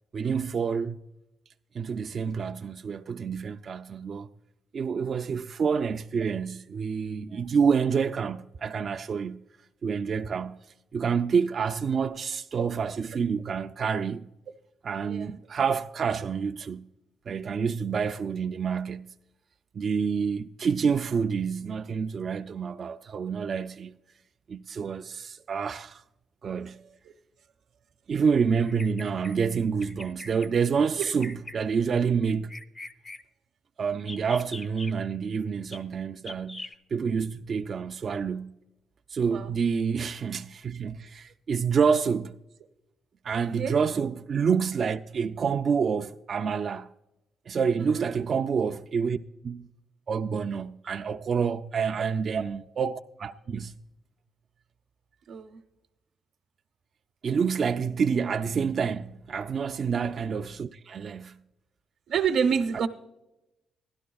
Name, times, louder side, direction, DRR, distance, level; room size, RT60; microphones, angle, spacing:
voice 1, 0.1-1.0 1.7-4.3 4.7-9.4 9.8-10.7 10.9-14.3 14.8-16.9 17.3-19.1 19.7-23.9 24.5-26.0 26.4-26.8 28.1-32.5 33.8-38.6 39.1-42.4 43.2-46.9 47.5-49.2 49.4-49.7 50.1-53.7 57.2-61.4 62.7-62.8, right 6 dB, 50° right, 0.3 m, -28 dB
Bird vocalization bird call bird song, 28.6-29.4 29.8-30.5 31.0-31.6 32.2-33.2 34.0-34.9 35.7-35.8 36.2-36.7, left 2 dB, 25° left, 0.6 m, -42 dB
voice 2, 55.3-55.6 59.9-60.1 62.1-62.9, right 7 dB, 70° right, 0.7 m, -28 dB
16.5 x 12.0 x 2.3 m
cardioid pair, 90°, 0 cm